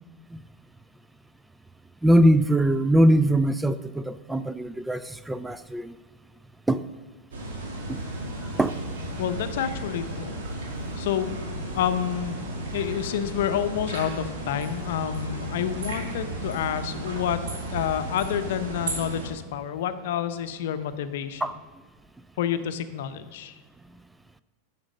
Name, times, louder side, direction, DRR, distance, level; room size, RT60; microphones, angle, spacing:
voice 1, 2.0-5.9 6.7-6.9 7.9-8.0 8.4-8.8 21.4-21.5, right 1 dB, 5° right, 13 dB, 0.3 m, -22 dB
sound 1, 7.3-19.3, right 1 dB, 75° right, 2.4 m, -34 dB
voice 2, 9.2-10.3 11.0-11.3 11.7-12.4 12.7-17.4 17.7-21.4 22.4-23.6, left 9 dB, 70° left, 11 dB, 0.6 m, -29 dB
8.7 x 5.9 x 5.2 m, 1.4 s
hypercardioid pair, 100°, 0 cm